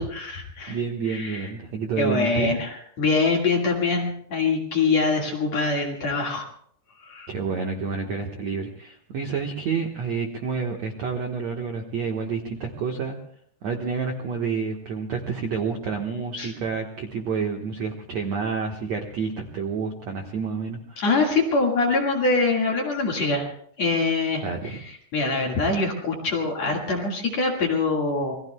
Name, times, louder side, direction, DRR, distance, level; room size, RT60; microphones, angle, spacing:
voice 1, 0.0-0.8 1.1-1.5 2.0-6.5 7.0-7.3 16.4-16.5 21.0-23.5 23.8-28.4, left 3 dB, 50° left, 1 dB, 2.3 m, -24 dB
voice 2, 0.7-2.5 7.3-13.2 13.6-21.0 24.4-24.8, right 5 dB, 70° right, 3 dB, 1.6 m, -29 dB
28.5 x 21.5 x 2.2 m, 0.65 s
omnidirectional pair, 5.2 m